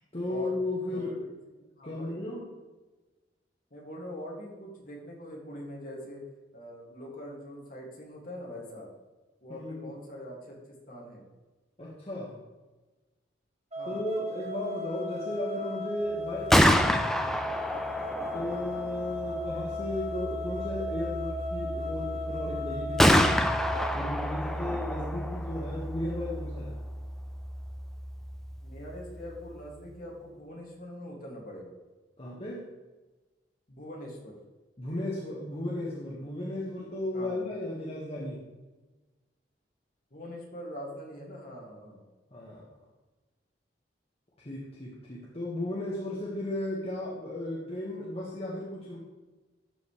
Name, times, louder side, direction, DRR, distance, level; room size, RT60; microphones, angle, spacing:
voice 1, 0.1-1.1 1.8-2.5 9.5-9.9 11.8-12.4 13.8-17.2 18.3-23.3 23.9-26.7 32.2-32.7 34.8-38.4 42.3-42.6 44.4-49.0, left 1 dB, 35° left, -6 dB, 1.6 m, -35 dB
voice 2, 1.5-2.2 3.7-6.2 6.5-8.9 9.4-10.6 10.9-11.3 13.8-14.1 19.2-19.4 24.9-25.1 28.6-31.7 33.7-34.4 37.1-37.4 40.1-42.0, left 1 dB, 50° left, -2 dB, 2.3 m, -43 dB
sound 1, 13.7-23.9, left 2 dB, 40° right, 2.0 m, -36 dB
Gunshot gunfire, 16.3-30.1, equal, ahead, 0.5 m, -29 dB
12.5 x 5.4 x 3.3 m, 1.2 s
head